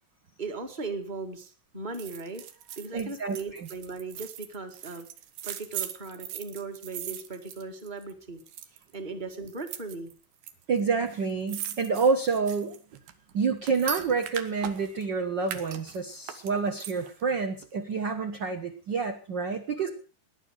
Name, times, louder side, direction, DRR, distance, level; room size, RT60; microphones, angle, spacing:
voice 1, 0.4-5.0 5.4-8.4 8.7-10.1 19.8-19.9, right 4 dB, 20° right, 6 dB, 1.5 m, -38 dB
sound 1, 1.9-8.1 8.4-8.9 9.5-10.5 10.8-10.9 11.1-15.1 15.4-17.2 17.6-17.7, right 10 dB, 90° right, 3.2 m, -40 dB
voice 2, 2.9-3.7 10.7-12.7 13.3-19.9, right 5 dB, 55° right, 4 dB, 1.3 m, -28 dB
19.0 x 10.5 x 6.4 m, 0.39 s
omnidirectional pair, 4.1 m